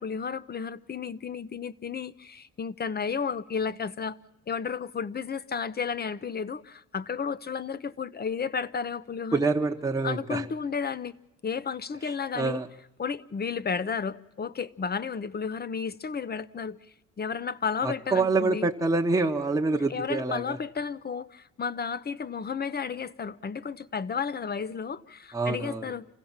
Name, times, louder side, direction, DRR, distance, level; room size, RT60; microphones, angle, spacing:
voice 1, 0.0-4.2 4.5-9.5 10.0-11.1 11.4-12.6 13.0-16.8 17.2-18.7 19.7-26.1, left 6 dB, 30° left, 0.8 m, -32 dB
voice 2, 9.3-10.4 12.3-12.7 17.8-20.6 25.3-25.9, right 3 dB, 10° right, 1.1 m, -26 dB
27.0 x 16.0 x 7.3 m
cardioid pair, 90°, 30 cm